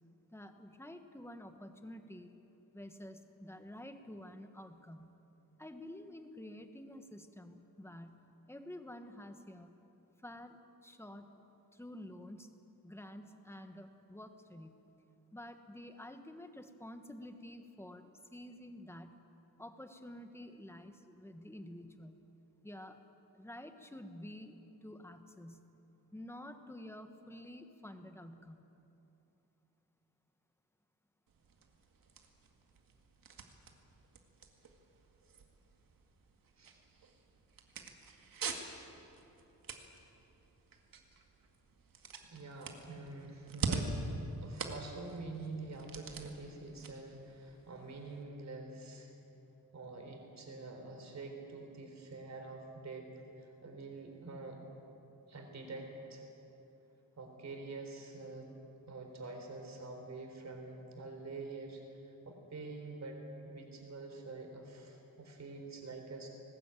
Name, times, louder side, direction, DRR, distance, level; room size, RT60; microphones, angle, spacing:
voice 1, 0.3-2.3 2.7-5.2 5.6-8.2 8.5-9.7 10.2-11.3 11.7-12.5 12.8-14.7 15.3-19.2 19.6-22.2 22.6-23.0 23.3-25.7 26.1-28.6, left 1 dB, 5° left, 7 dB, 1.3 m, -50 dB
sound 1, 31.3-48.2, right 4 dB, 75° right, 2.1 m, -45 dB
voice 2, 42.3-44.0 44.4-49.1 49.7-53.1 53.4-54.6 55.3-56.3 57.2-58.5 58.9-63.2 63.4-66.3, right 3 dB, 50° right, 3 dB, 3.9 m, -46 dB
20.0 x 19.5 x 9.0 m, 2.9 s
wide cardioid pair, 170°, 35 cm